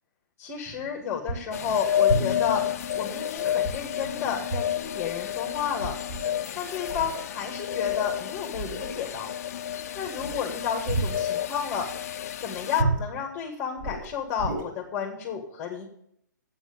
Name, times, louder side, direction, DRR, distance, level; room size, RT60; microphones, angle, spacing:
voice 1, 0.4-2.7 2.9-6.0 6.6-9.3 9.9-11.9 12.4-15.9, left 7 dB, 20° left, 0 dB, 1.9 m, -31 dB
sound 1, 0.8-0.9 1.3-1.6 2.1-2.5 3.6-4.2 4.5-4.7 5.0-5.1 5.5-6.3 6.9-7.2 7.9-8.1 8.5-9.1 10.2-11.3 12.8-13.1 13.8-14.6, right 2 dB, 35° right, 4.3 m, -31 dB
sound 2, 1.5-12.8, left 10 dB, 50° left, 0.5 m, -30 dB
8.0 x 8.0 x 8.7 m, 0.70 s
hypercardioid pair, 140°, 10 cm